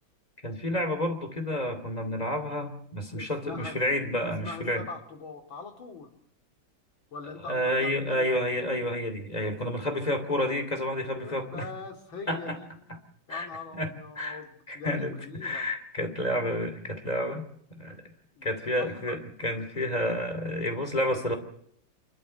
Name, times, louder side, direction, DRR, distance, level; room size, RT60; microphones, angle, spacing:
voice 1, 0.4-4.8 7.5-11.7 12.3-12.6 13.3-13.5 13.8-13.9 14.2-14.4 14.7-17.4 17.7-18.0 18.4-21.3, left 1 dB, 20° left, 7 dB, 2.6 m, -30 dB
voice 2, 3.1-3.8 4.2-6.1 7.1-8.4 11.1-12.7 13.3-15.7 18.3-19.2, left 4 dB, 70° left, 3 dB, 3.3 m, -42 dB
28.0 x 12.5 x 7.8 m, 0.71 s
omnidirectional pair, 2.3 m